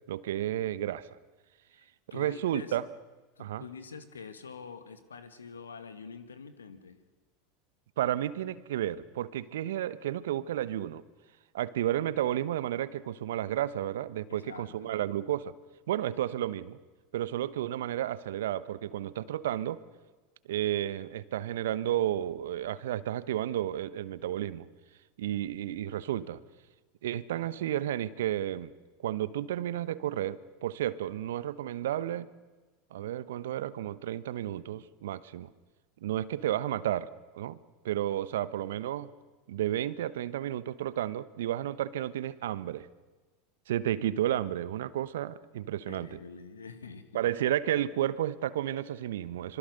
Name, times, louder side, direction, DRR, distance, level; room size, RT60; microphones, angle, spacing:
voice 1, 0.1-1.1 2.1-2.9 3.4-3.6 8.0-11.0 11.5-15.5 15.9-16.8 17.1-19.8 20.5-24.7 25.2-26.4 27.0-28.7 29.0-32.3 32.9-35.5 36.0-37.1 37.3-37.6 37.8-39.1 39.5-42.9 43.7-46.2 47.1-49.6, right 12 dB, 70° right, 17 dB, 1.0 m, -32 dB
voice 2, 1.7-2.8 3.3-7.0 14.3-15.0 45.9-47.3, left 5 dB, 80° left, 11 dB, 1.8 m, -46 dB
25.5 x 23.5 x 6.7 m, 1.3 s
figure-of-eight pair, 80°, 0 cm